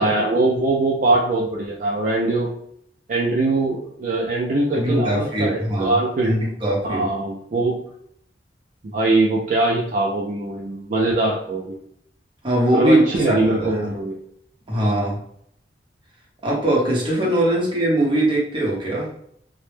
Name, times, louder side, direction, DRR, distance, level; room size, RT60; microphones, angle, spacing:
voice 1, 0.0-2.5 3.1-6.3 6.8-7.8 8.9-11.8 12.7-14.2, right 2 dB, 45° right, -2 dB, 0.3 m, -21 dB
voice 2, 4.7-6.0 6.2-7.1 12.4-13.9 14.7-15.2 16.4-19.1, right 1 dB, 30° right, -3 dB, 0.7 m, -21 dB
2.0 x 2.0 x 3.1 m, 0.69 s
head